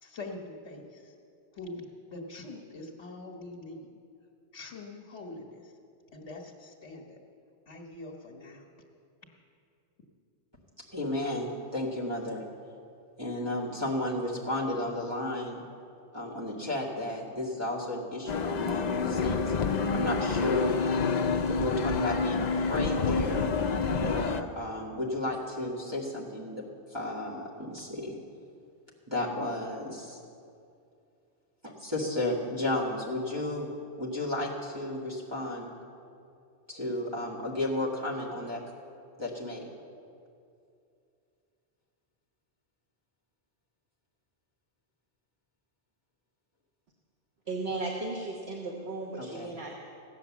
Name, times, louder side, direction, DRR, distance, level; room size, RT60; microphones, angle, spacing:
voice 1, 0.0-1.1 1.5-4.0 4.5-5.7 6.1-7.2 7.7-8.7, left 2 dB, 75° left, 0 dB, 1.6 m, -44 dB
voice 2, 10.9-12.4 13.2-15.6 16.1-19.5 19.9-20.7 21.5-23.5 24.0-26.6 26.9-28.2 29.1-30.2 31.6-33.7 34.0-35.7 36.7-38.6 39.2-39.7 49.2-49.5, left 1 dB, 20° right, -7 dB, 1.8 m, -33 dB
sound 1, 18.3-24.4, left 4 dB, 45° left, 0.6 m, -28 dB
voice 3, 47.5-49.8, right 2 dB, 65° right, -1 dB, 1.6 m, -35 dB
15.5 x 9.6 x 7.2 m, 2.5 s
omnidirectional pair, 1.2 m